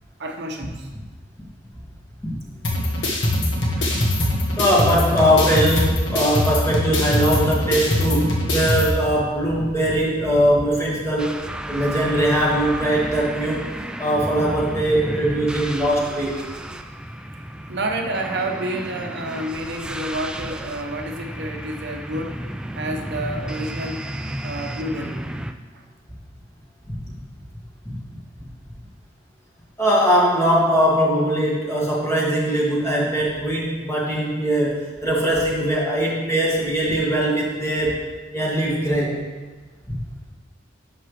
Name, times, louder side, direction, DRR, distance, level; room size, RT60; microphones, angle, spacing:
voice 1, 0.2-0.9 3.0-3.1 3.8-4.1 17.7-22.4 22.7-24.0 24.4-25.3 25.7-25.8, right 1 dB, 60° right, 3 dB, 0.8 m, -29 dB
sound 1, 2.6-8.9, left 1 dB, 75° left, 1.4 m, -22 dB
voice 2, 4.6-11.4 11.7-13.6 14.0-16.3 27.9-28.0 29.8-37.9 38.3-39.2, equal, 15° left, -5 dB, 2.0 m, -21 dB
sound 2, 11.2-25.5, right 1 dB, 5° right, 0.3 m, -32 dB
10.5 x 6.8 x 3.2 m, 1.3 s
head